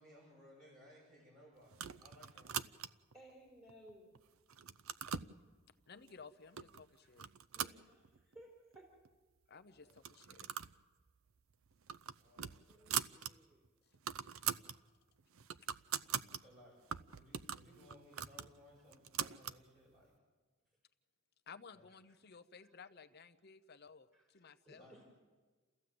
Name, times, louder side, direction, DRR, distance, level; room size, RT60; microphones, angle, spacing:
voice 1, 0.0-2.7 9.8-10.0 12.2-12.8 16.3-16.8 17.1-20.1 20.6-20.7 21.7-21.9 24.8-25.0, left 1 dB, 40° right, -4 dB, 7.4 m, -62 dB
sound 1, 1.7-3.1 3.7-4.2 4.5-5.3 6.1-6.2 6.6-6.8 7.2-8.4 8.7-8.8 9.1-9.2 9.9-10.8 11.1-11.3 11.7-13.3 13.7-13.8 13.9-14.8 15.2-16.4 16.9-19.6, right 9 dB, 75° right, 0.7 m, -42 dB
voice 2, 3.1-4.2 7.5-9.0 12.6-13.6 22.6-22.7 24.1-24.3 24.6-25.0, right 1 dB, 15° right, -2 dB, 4.0 m, -60 dB
voice 3, 5.9-7.2 9.5-10.5 21.5-24.9, left 5 dB, 50° left, 9 dB, 0.9 m, -56 dB
29.5 x 14.5 x 7.9 m, 1.3 s
head